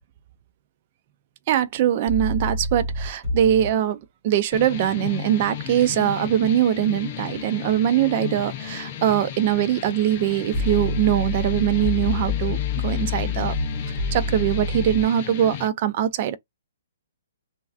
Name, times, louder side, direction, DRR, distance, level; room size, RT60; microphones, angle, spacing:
voice 1, 1.5-4.0 4.2-13.5 14.1-16.4, right 11 dB, 30° right, 0.3 m, -22 dB
sound 1, 2.1-3.7 10.5-15.0, left 3 dB, 10° right, 1.7 m, -27 dB
sound 2, 4.5-15.7, left 10 dB, 25° left, 0.5 m, -34 dB
3.1 x 2.3 x 2.4 m
hypercardioid pair, 175°, 0 cm